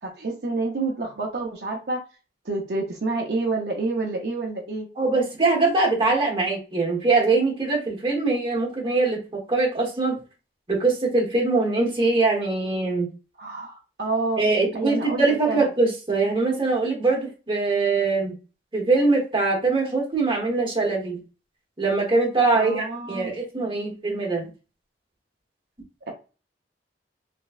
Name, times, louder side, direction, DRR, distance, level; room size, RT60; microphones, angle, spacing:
voice 1, 0.0-2.0 2.4-4.9 13.4-14.4 14.7-15.7 22.5-23.3, right 3 dB, 60° right, 0 dB, 0.6 m, -28 dB
voice 2, 5.0-10.2 10.7-13.1 14.4-18.4 18.7-21.2 21.8-24.5, right 3 dB, 25° right, -2 dB, 1.1 m, -22 dB
3.4 x 3.0 x 2.3 m, 0.33 s
head